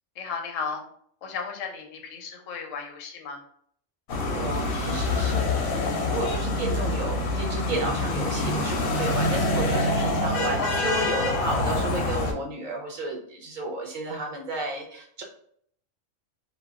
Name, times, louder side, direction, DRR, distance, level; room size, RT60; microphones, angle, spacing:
voice 1, 0.2-0.8 1.2-3.4 10.6-10.7, left 5 dB, 85° left, 3 dB, 1.0 m, -34 dB
sound 1, 4.1-12.3, left 2 dB, 60° left, 0.6 m, -26 dB
voice 2, 4.3-15.2, right 2 dB, 55° right, 0 dB, 0.5 m, -32 dB
2.2 x 2.0 x 3.5 m, 0.64 s
omnidirectional pair, 1.3 m